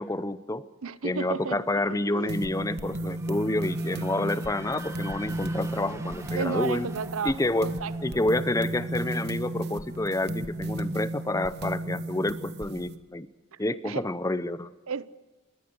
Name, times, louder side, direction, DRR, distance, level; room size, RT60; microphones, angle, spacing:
voice 1, 0.0-0.7 1.0-6.9 7.2-7.7 8.0-13.3 13.6-14.7, left 2 dB, 15° left, 0.6 m, -29 dB
voice 2, 0.8-2.4 6.3-7.3 7.6-7.9 13.5-13.6 13.8-14.0 14.9-15.1, right 5 dB, 70° right, 0.7 m, -33 dB
sound 1, 1.2-11.1, right 1 dB, 15° right, 1.3 m, -47 dB
sound 2, 2.3-13.0, right 1 dB, 50° right, 1.3 m, -34 dB
21.5 x 18.5 x 7.8 m
head